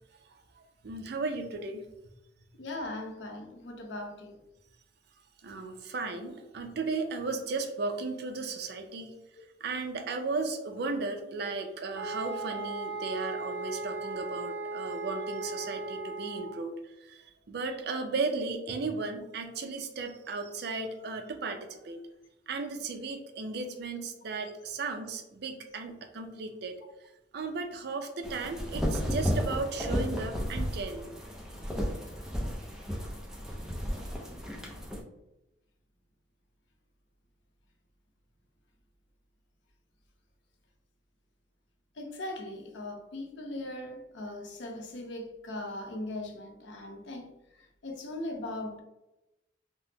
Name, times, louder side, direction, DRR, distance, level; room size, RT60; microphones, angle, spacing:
voice 1, 0.5-1.9 5.4-9.2 9.6-22.0 22.5-26.8 27.3-31.1, right 3 dB, 60° right, 0.4 m, -35 dB
voice 2, 2.6-4.4 42.0-48.8, left 1 dB, 75° left, 0.6 m, -39 dB
sound 1, 11.9-16.6, right 3 dB, 90° right, 0.9 m, -37 dB
sound 2, 28.2-35.0, equal, 5° right, 0.4 m, -33 dB
3.4 x 2.0 x 2.8 m
head